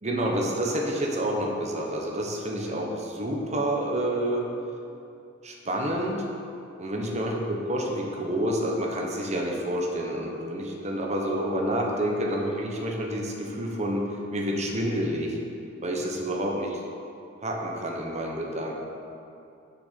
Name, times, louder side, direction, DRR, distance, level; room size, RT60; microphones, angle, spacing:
voice 1, 0.0-4.5 5.4-6.2 6.8-15.4 15.8-16.8 17.4-18.7, right 1 dB, 35° right, 0 dB, 1.2 m, -28 dB
7.1 x 6.7 x 5.8 m, 2.7 s
head